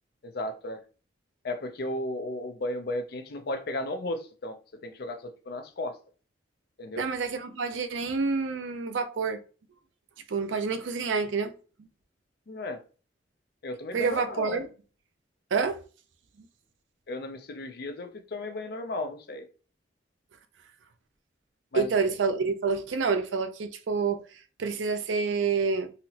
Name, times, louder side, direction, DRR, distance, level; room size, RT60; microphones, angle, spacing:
voice 1, 0.2-0.8 1.4-6.0 6.8-7.1 12.5-12.8 13.6-14.6 17.1-19.5 21.7-21.9, left 1 dB, 55° left, 0.5 m, -34 dB
voice 2, 7.0-9.4 10.3-11.5 13.9-14.7 15.5-15.8 21.7-24.2 24.6-25.9, right 5 dB, 85° right, 0.5 m, -28 dB
4.0 x 2.0 x 2.7 m
head